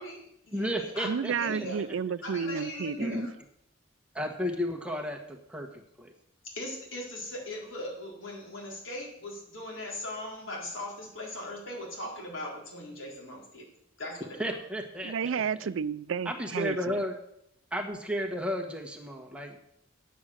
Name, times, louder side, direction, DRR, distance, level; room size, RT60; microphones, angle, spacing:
voice 1, 0.0-1.8 2.2-3.3 6.5-13.7 14.0-14.4, left 1 dB, 85° left, -1 dB, 3.9 m, -39 dB
voice 2, 0.5-1.7 3.0-3.3 4.1-6.1 14.4-15.7 16.2-17.1 17.7-19.6, equal, 5° right, 2 dB, 1.3 m, -33 dB
voice 3, 1.0-3.2 15.0-17.0, right 6 dB, 85° right, 18 dB, 0.4 m, -31 dB
10.0 x 8.4 x 6.4 m, 0.75 s
head